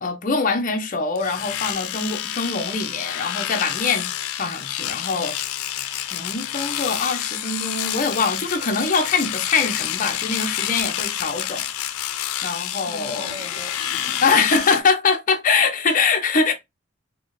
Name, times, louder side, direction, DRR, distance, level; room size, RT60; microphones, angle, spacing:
voice 1, 0.0-4.1 4.4-5.3 6.1-11.7 12.4-13.4 14.2-16.5, left 4 dB, 40° left, 0.6 m, -23 dB
Domestic sounds home sounds, 1.1-14.8, left 11 dB, 85° left, 0.4 m, -28 dB
voice 2, 12.9-14.2, right 1 dB, 20° right, 0.7 m, -40 dB
4.1 x 2.1 x 3.1 m
head